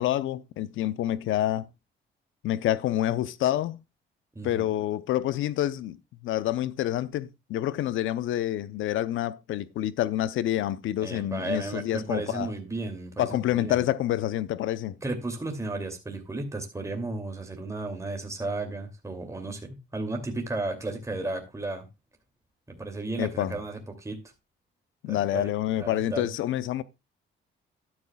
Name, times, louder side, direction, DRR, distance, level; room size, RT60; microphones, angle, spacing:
voice 1, 0.0-1.7 2.4-3.8 4.4-6.0 6.2-12.5 13.2-14.9 23.2-23.6 25.0-26.8, left 13 dB, 80° left, 0.7 m, -27 dB
voice 2, 4.3-4.7 11.0-13.8 15.0-21.9 22.7-24.2 25.1-25.5 25.8-26.3, right 2 dB, 15° right, 2.6 m, -34 dB
12.5 x 10.5 x 2.3 m
cardioid pair, 90°, 20 cm